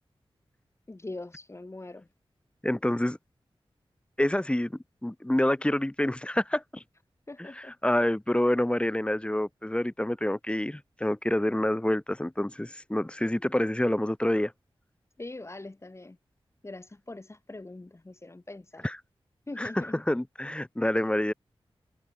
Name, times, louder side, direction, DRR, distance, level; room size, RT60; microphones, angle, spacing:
voice 1, 0.9-2.1 7.3-7.8 15.2-16.2 16.6-18.9 19.5-20.0, left 2 dB, 30° left, 5.2 m, -42 dB
voice 2, 2.6-3.2 4.2-4.7 5.0-6.8 7.4-7.5 7.8-14.5 18.8-19.0 19.6-21.3, left 1 dB, 10° left, 1.9 m, -27 dB
wide cardioid pair, 95°, 10 cm